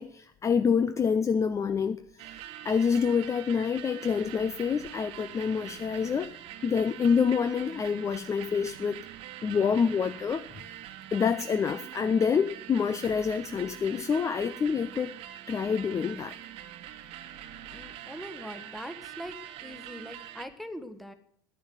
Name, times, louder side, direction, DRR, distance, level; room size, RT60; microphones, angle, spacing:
voice 1, 0.0-2.0 2.3-6.3 6.6-9.0 9.4-10.6 11.1-15.1 15.5-16.4, left 6 dB, 25° left, 11 dB, 0.6 m, -27 dB
sound 1, 2.2-20.5, right 12 dB, 55° right, 0.9 m, -44 dB
voice 2, 17.7-19.3 19.6-21.1, equal, ahead, 9 dB, 1.4 m, -42 dB
10.0 x 9.7 x 7.8 m, 0.63 s
figure-of-eight pair, 70°, 12 cm